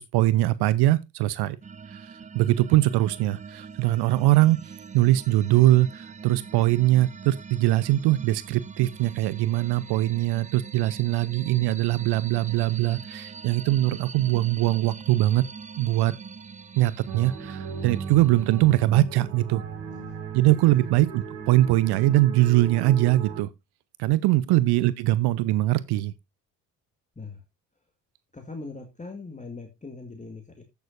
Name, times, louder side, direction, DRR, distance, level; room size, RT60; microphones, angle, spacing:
voice 1, 0.0-1.6 1.9-2.1 2.3-15.4 15.8-16.1 16.8-19.6 20.3-23.5 24.0-26.1, right 16 dB, 55° right, 0.7 m, -22 dB
sound 1, 1.6-18.8, right 5 dB, 15° right, 0.6 m, -43 dB
sound 2, 17.0-23.4, right 6 dB, 70° right, 2.4 m, -36 dB
voice 2, 28.3-30.6, left 3 dB, 15° left, 2.0 m, -40 dB
15.0 x 6.9 x 2.5 m
figure-of-eight pair, 50°, 48 cm